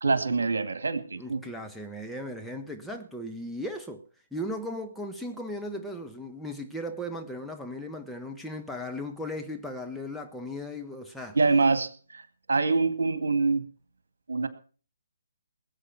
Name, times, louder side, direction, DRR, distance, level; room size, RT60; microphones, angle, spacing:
voice 1, 0.0-1.4 11.3-12.2 12.5-13.7 14.3-14.5, right 4 dB, 70° right, 2.0 m, -25 dB
voice 2, 1.2-4.0 4.3-11.4, left 1 dB, ahead, 1.1 m, -37 dB
20.5 x 8.3 x 5.9 m
figure-of-eight pair, 140°, 0 cm